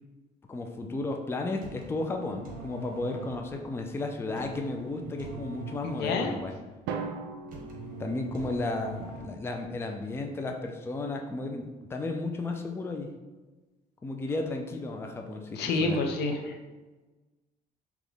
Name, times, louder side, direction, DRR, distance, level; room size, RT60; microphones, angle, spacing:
voice 1, 0.5-6.6 8.0-13.1 14.0-16.0, left 2 dB, 15° left, 3 dB, 0.4 m, -33 dB
sound 1, 1.4-9.6, right 2 dB, 55° right, 1.0 m, -44 dB
voice 2, 5.8-6.3 15.6-16.5, left 3 dB, 75° left, 3 dB, 0.7 m, -28 dB
Drum, 6.9-8.9, right 5 dB, 90° right, 0.5 m, -38 dB
3.4 x 3.0 x 3.8 m, 1.2 s
cardioid pair, 110°, 17 cm